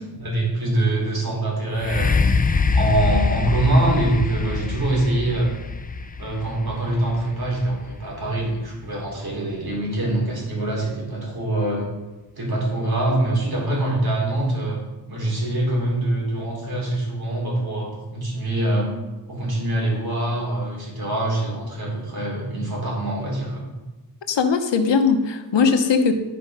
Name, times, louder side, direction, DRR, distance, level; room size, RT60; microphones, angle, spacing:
voice 1, 0.2-2.1 2.5-5.5 6.2-11.9 12.4-14.8 15.1-18.9 19.3-23.7, right 1 dB, 60° right, -3 dB, 3.3 m, -24 dB
sound 1, 1.8-9.5 10.2-10.3, left 4 dB, 20° left, 0.4 m, -24 dB
voice 2, 24.3-26.1, left 5 dB, 85° left, 6 dB, 1.0 m, -19 dB
11.0 x 5.1 x 5.3 m, 1.1 s
wide cardioid pair, 120°, 42 cm